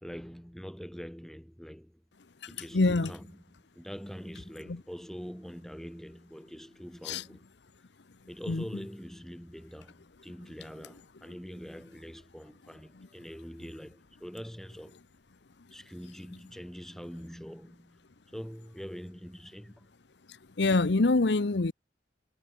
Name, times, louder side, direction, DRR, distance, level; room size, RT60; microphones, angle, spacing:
voice 1, 0.0-1.9 2.5-3.2 3.8-7.4 8.3-15.0 15.7-18.0 18.3-19.9, equal, ahead, 1.9 m, -44 dB
voice 2, 2.4-3.1 4.7-4.8 7.0-7.3 8.5-8.8 12.9-13.1 16.3-16.4 20.3-21.7, left 3 dB, 65° left, 0.8 m, -27 dB
head